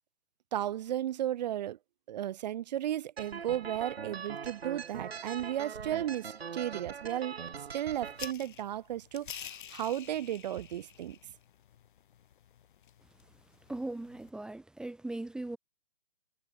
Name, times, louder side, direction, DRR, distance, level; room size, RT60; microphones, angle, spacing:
voice 1, 0.5-1.8 2.1-7.4 7.7-11.2, right 12 dB, 45° right, 1.6 m, -34 dB
sound 1, 3.2-8.3, right 6 dB, 85° right, 1.8 m, -42 dB
sound 2, 8.1-14.3, left 9 dB, 55° left, 4.9 m, -49 dB
voice 2, 13.7-15.6, right 2 dB, ahead, 1.9 m, -39 dB
hypercardioid pair, 155°, 30 cm